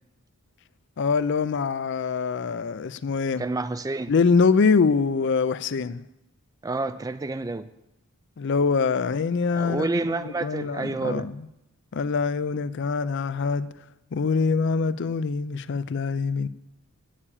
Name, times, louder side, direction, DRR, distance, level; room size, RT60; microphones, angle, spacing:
voice 1, 1.0-3.5 4.1-6.0 8.4-9.9 10.2-11.5 11.9-13.7 14.1-16.5, left 5 dB, 55° left, 0.4 m, -24 dB
voice 2, 3.4-4.1 6.6-7.7 9.5-11.2, right 3 dB, 15° right, 0.4 m, -29 dB
8.5 x 7.3 x 8.6 m
head